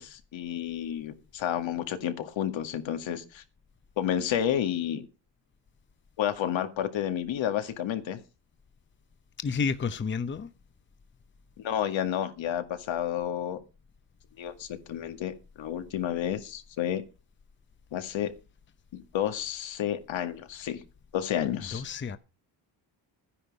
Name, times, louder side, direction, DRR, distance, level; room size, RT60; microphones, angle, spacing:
voice 1, 0.0-3.4 4.0-5.1 6.2-8.2 11.6-13.6 14.4-17.0 17.9-18.3 18.9-20.8 21.1-21.8, left 10 dB, 75° left, 2.1 m, -31 dB
voice 2, 9.4-10.5 21.7-22.2, left 5 dB, 25° left, 0.8 m, -30 dB
13.0 x 10.0 x 5.3 m
cardioid pair, 125°, 46 cm